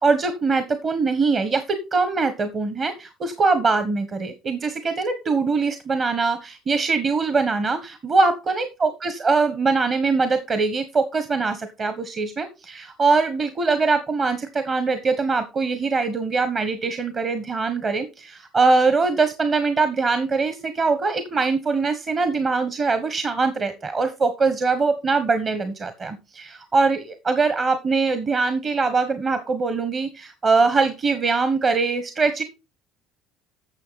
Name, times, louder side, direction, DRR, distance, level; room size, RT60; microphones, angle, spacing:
voice 1, 0.0-32.4, right 4 dB, 40° right, 10 dB, 1.3 m, -22 dB
9.6 x 7.0 x 4.1 m, 0.29 s
supercardioid pair, 85°, 0 cm